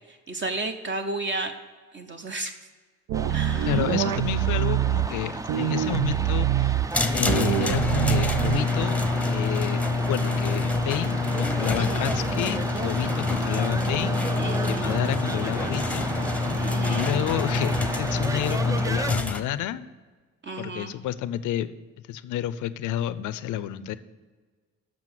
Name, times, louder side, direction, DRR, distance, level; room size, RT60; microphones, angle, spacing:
voice 1, 0.3-1.5 1.9-2.5 3.3-3.8 11.8-12.1 14.4-14.9 16.6-17.1 20.4-20.9, right 2 dB, 40° right, 5 dB, 0.8 m, -32 dB
sound 1, 3.1-19.1, right 3 dB, 10° right, 0.3 m, -34 dB
sound 2, 3.1-5.1 5.5-6.9 7.3-8.9, right 12 dB, 85° right, 0.5 m, -25 dB
voice 2, 3.7-6.8 7.1-14.2 14.7-16.1 16.9-19.9 20.6-21.8 22.1-24.0, left 12 dB, 80° left, 15 dB, 0.6 m, -30 dB
sound 3, 6.9-19.4, left 3 dB, 5° left, 0.8 m, -26 dB
7.6 x 5.8 x 7.5 m, 1.4 s
cardioid pair, 90°, 30 cm